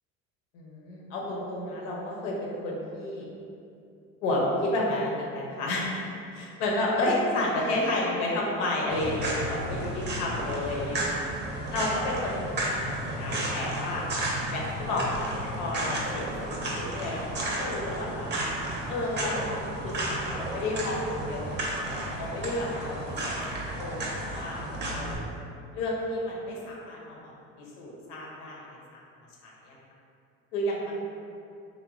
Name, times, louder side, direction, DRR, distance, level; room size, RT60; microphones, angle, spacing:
voice 1, 0.5-3.3 4.2-6.0 6.3-11.3 11.7-12.4 12.7-14.1 14.5-18.3 18.9-25.2 25.7-27.3 27.6-29.0 30.5-31.0, left 1 dB, 90° left, -3 dB, 0.7 m, -31 dB
sound 1, 8.9-25.2, right 1 dB, 35° right, 0.6 m, -33 dB
3.0 x 2.1 x 2.4 m, 2.6 s
supercardioid pair, 95°, 31 cm